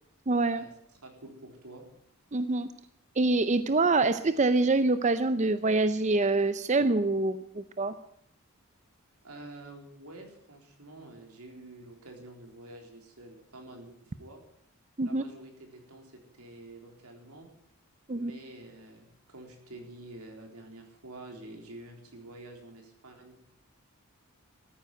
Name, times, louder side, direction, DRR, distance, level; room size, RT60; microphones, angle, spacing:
voice 1, 0.3-0.6 2.3-2.7 3.2-7.9 15.0-15.2 18.1-18.3, right 3 dB, 30° right, 12 dB, 0.6 m, -25 dB
voice 2, 1.0-1.8 9.2-14.4 15.0-17.5 18.1-23.4, right 1 dB, 85° right, 3 dB, 3.9 m, -48 dB
14.0 x 9.6 x 9.5 m, 0.72 s
head